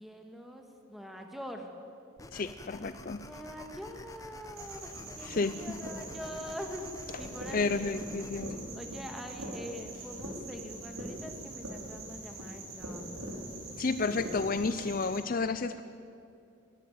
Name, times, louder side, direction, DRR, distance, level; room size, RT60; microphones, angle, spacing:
voice 1, 0.0-1.7 3.2-7.8 8.7-13.2, equal, ahead, 3 dB, 1.7 m, -44 dB
sound 1, 2.2-8.4, left 1 dB, 15° left, 0.9 m, -49 dB
voice 2, 2.3-3.2 5.3-5.6 7.5-8.6 13.8-15.8, left 4 dB, 40° left, 12 dB, 0.5 m, -31 dB
sound 2, 4.5-15.2, right 1 dB, 90° right, 5.7 m, -42 dB
21.5 x 13.0 x 9.2 m, 2.6 s
head